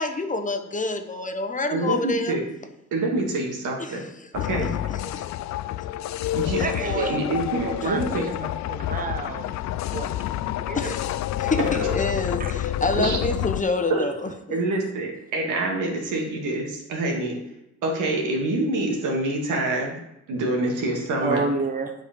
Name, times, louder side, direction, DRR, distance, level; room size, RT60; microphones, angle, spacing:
voice 1, 0.0-2.3 3.8-4.7 5.1-5.2 6.6-7.1 10.7-14.3, left 2 dB, 25° left, 7 dB, 1.0 m, -28 dB
voice 2, 1.7-2.5 2.9-4.0 4.4-4.7 5.1-5.2 6.3-6.6 6.9-8.2 13.0-13.2 13.9-14.1 14.5-17.4 17.8-20.0 20.3-21.4, right 2 dB, 80° right, 0 dB, 2.3 m, -26 dB
sound 1, 4.3-13.6, left 13 dB, 65° left, 0.5 m, -28 dB
voice 3, 6.6-7.1 7.6-8.3 8.7-9.5 9.8-10.1 10.7-10.9 12.4-12.5 21.2-21.9, right 4 dB, 30° right, 5 dB, 1.1 m, -29 dB
8.3 x 5.1 x 5.3 m, 0.85 s
cardioid pair, 90°, 30 cm